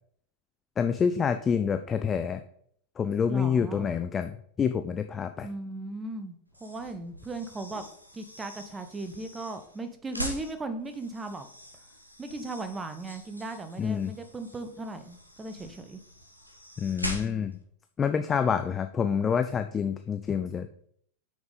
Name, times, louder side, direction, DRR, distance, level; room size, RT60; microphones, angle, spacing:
voice 1, 0.8-2.4 3.0-4.3 4.6-5.5 13.8-14.1 16.8-17.6 18.0-20.7, left 7 dB, 20° left, 9 dB, 0.5 m, -27 dB
voice 2, 3.3-3.9 5.4-7.9 8.1-11.5 12.2-16.0 17.1-17.6 18.4-18.7, right 2 dB, 15° right, 9 dB, 1.0 m, -37 dB
sound 1, 6.5-17.6, equal, 90° left, 1.3 m, -43 dB
8.5 x 6.1 x 4.1 m, 0.63 s
figure-of-eight pair, 90°, 0 cm